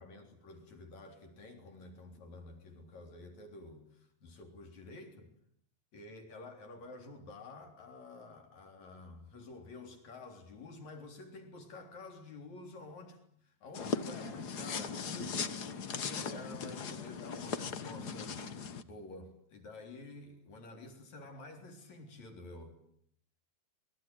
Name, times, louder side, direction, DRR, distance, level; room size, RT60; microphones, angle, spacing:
voice 1, 0.0-5.3 5.9-22.8, left 2 dB, 55° left, 4.9 m, -50 dB
sound 1, 13.7-18.8, left 5 dB, 75° left, 0.9 m, -38 dB
26.5 x 22.0 x 9.3 m
omnidirectional pair, 3.8 m